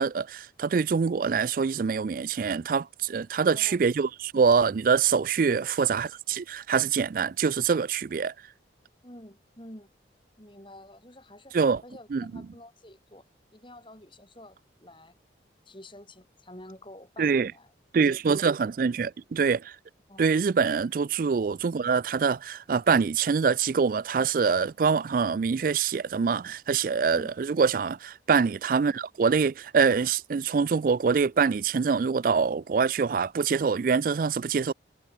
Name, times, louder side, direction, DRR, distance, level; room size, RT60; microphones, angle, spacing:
voice 1, 0.0-8.3 11.5-11.8 12.1-12.4 17.2-17.5 17.9-19.7 20.2-34.7, right 5 dB, 45° right, 0.3 m, -25 dB
voice 2, 3.3-3.8 5.5-5.7 9.0-9.9 10.4-11.6 11.8-13.2 13.5-15.1 15.7-17.7 18.1-18.2 20.1-20.2 27.1-27.3, left 1 dB, 25° left, 5.8 m, -48 dB
head